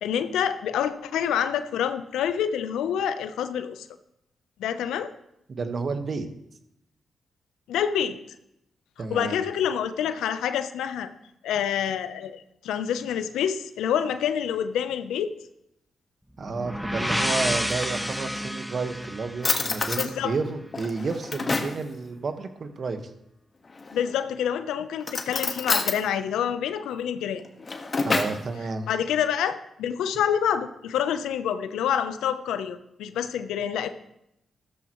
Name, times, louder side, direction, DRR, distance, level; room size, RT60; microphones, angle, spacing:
voice 1, 0.0-3.9 4.6-5.1 7.7-8.2 9.1-11.1 11.4-15.3 20.0-20.3 23.9-27.4 28.9-33.9, left 9 dB, 80° left, 11 dB, 0.8 m, -27 dB
voice 2, 5.6-6.3 9.0-9.4 16.4-23.1 28.0-28.9, right 4 dB, 55° right, 8 dB, 1.5 m, -31 dB
sound 1, 16.4-20.2, equal, ahead, 1.1 m, -30 dB
Drawer open or close, 17.5-18.5 19.0-19.1 19.4-20.1 20.7-21.8 23.7-24.2 25.0-26.0 27.4-28.4, left 3 dB, 45° left, 1.6 m, -28 dB
14.5 x 13.0 x 3.1 m, 0.80 s
supercardioid pair, 45°, 0 cm